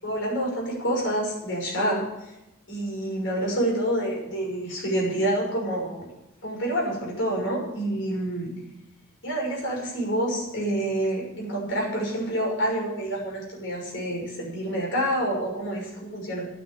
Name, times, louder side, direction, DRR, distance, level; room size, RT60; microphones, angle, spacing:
voice 1, 0.0-2.3 2.7-6.1 6.4-8.5 9.2-16.5, right 1 dB, 60° left, -2 dB, 6.2 m, -28 dB
11.5 x 9.6 x 9.1 m, 0.96 s
head